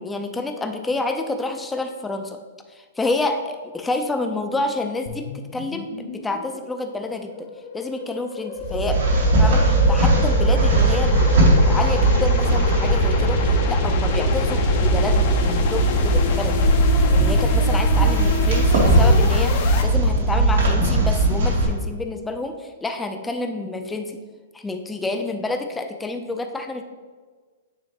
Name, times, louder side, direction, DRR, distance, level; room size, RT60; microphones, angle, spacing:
voice 1, 0.0-2.4 2.7-7.5 7.7-9.0 9.4-13.4 13.7-16.6 17.1-24.2 24.5-26.8, left 2 dB, 10° left, 5 dB, 0.5 m, -28 dB
sound 1, 5.1-19.8, left 5 dB, 50° left, 0.7 m, -29 dB
sound 2, 8.6-21.7, right 1 dB, 90° right, 1.8 m, -18 dB
8.9 x 3.4 x 3.1 m, 1.5 s
hypercardioid pair, 140°, 0 cm